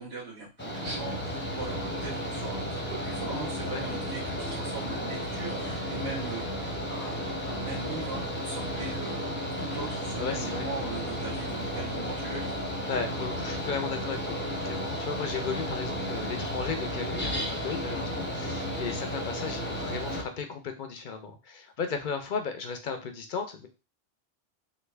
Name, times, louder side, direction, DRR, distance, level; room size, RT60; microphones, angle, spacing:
voice 1, 0.0-9.2 9.6-12.6, right 3 dB, 65° right, -8 dB, 1.5 m, -39 dB
Mechanical fan, 0.6-20.2, equal, 10° left, 0.7 m, -33 dB
voice 2, 10.2-10.7 12.9-23.7, left 5 dB, 55° left, 6 dB, 0.6 m, -35 dB
3.3 x 2.5 x 3.2 m, 0.31 s
omnidirectional pair, 1.1 m